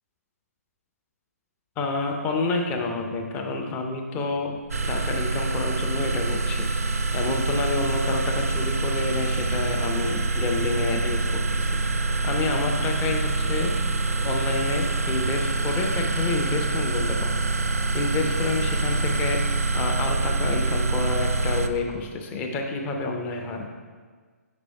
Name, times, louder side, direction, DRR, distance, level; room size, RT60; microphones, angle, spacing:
voice 1, 1.8-4.5 4.9-6.7 7.1-13.7 14.2-17.3 17.9-19.4 19.7-23.7, left 3 dB, 15° left, 2 dB, 0.6 m, -29 dB
sound 1, 4.6-18.8, right 2 dB, 90° left, 1.9 m, -43 dB
sound 2, 4.7-21.7, right 2 dB, 65° right, 0.4 m, -25 dB
5.0 x 5.0 x 4.6 m, 1.5 s
figure-of-eight pair, 130°, 9 cm